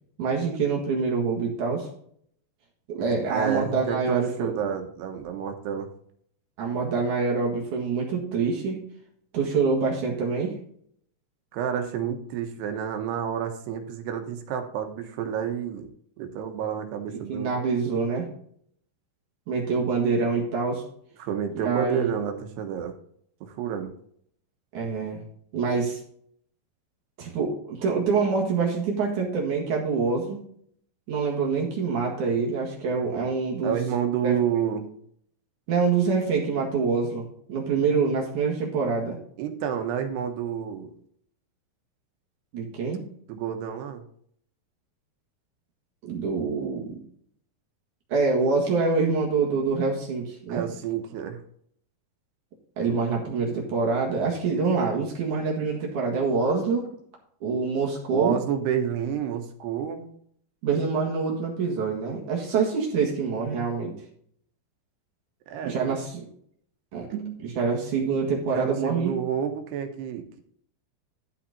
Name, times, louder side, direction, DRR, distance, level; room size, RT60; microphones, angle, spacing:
voice 1, 0.2-1.9 2.9-4.5 6.6-8.8 9.3-10.6 17.1-18.3 19.5-20.8 21.6-22.2 24.7-25.2 25.5-26.0 27.2-30.4 31.1-33.8 34.2-34.4 35.7-39.2 42.5-43.1 46.0-46.9 48.1-50.6 52.8-56.9 57.4-58.4 60.6-63.9 65.6-66.2 66.9-67.1 67.6-69.2, right 4 dB, 55° right, -1 dB, 2.8 m, -25 dB
voice 2, 3.3-5.9 11.5-15.9 16.2-17.5 21.2-22.9 23.4-23.9 33.6-34.9 39.4-40.9 43.3-44.0 50.5-51.4 58.1-60.1 65.5-66.0 67.1-67.4 68.5-70.4, right 8 dB, 85° right, 6 dB, 3.2 m, -29 dB
12.0 x 5.8 x 4.1 m, 0.63 s
omnidirectional pair, 4.7 m